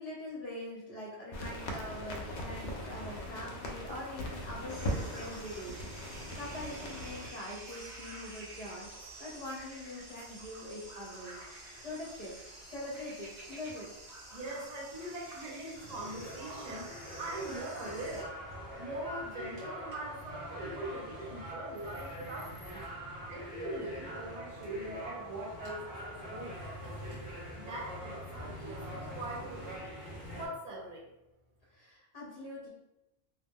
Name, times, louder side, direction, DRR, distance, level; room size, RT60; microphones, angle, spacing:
voice 1, 0.0-8.9 9.2-11.4 11.8-12.3 12.7-14.0 31.7-32.7, left 1 dB, 35° left, -4 dB, 0.9 m, -43 dB
sound 1, 1.3-7.3, equal, 70° left, 0.8 m, -40 dB
sound 2, 4.7-18.2, right 2 dB, 65° right, 1.0 m, -49 dB
voice 2, 14.3-18.3 18.8-22.9 23.3-26.0 26.3-26.6 27.5-29.9 30.3-31.1, right 1 dB, 40° right, -3 dB, 0.7 m, -42 dB
sound 3, 15.7-30.5, equal, 25° right, 1.0 m, -44 dB
2.3 x 2.1 x 3.5 m, 0.93 s
omnidirectional pair, 1.2 m